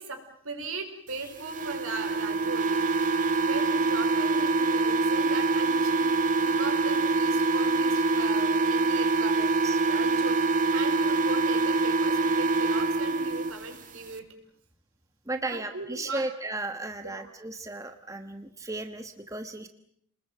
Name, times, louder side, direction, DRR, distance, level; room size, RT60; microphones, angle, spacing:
voice 1, 0.0-9.4 9.9-14.3 15.4-16.2 17.0-17.3, right 3 dB, 80° right, 5 dB, 5.2 m, -39 dB
sound 1, 1.4-13.5, right 3 dB, 40° right, 1.9 m, -25 dB
voice 2, 9.3-9.8 15.2-19.7, right 2 dB, 15° right, 7 dB, 1.3 m, -35 dB
29.5 x 21.0 x 7.6 m, 0.66 s
head